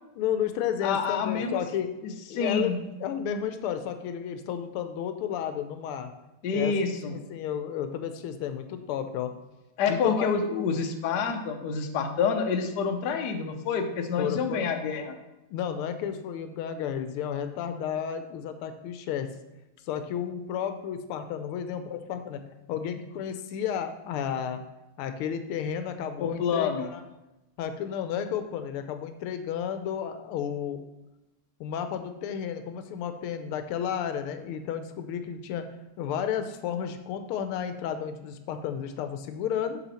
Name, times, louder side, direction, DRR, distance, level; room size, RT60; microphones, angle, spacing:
voice 1, 0.2-1.9 2.3-6.1 6.5-6.7 7.1-9.3 9.9-10.3 14.2-14.7 15.5-19.3 19.9-22.4 22.7-24.6 25.0-27.0 27.6-30.9 31.6-35.7 36.0-39.8, left 8 dB, 85° left, 8 dB, 1.5 m, -32 dB
voice 2, 0.8-1.6 2.0-2.7 6.4-7.1 9.8-15.2 26.2-26.9, left 5 dB, 60° left, 4 dB, 1.2 m, -28 dB
7.0 x 6.2 x 4.2 m, 0.99 s
omnidirectional pair, 2.4 m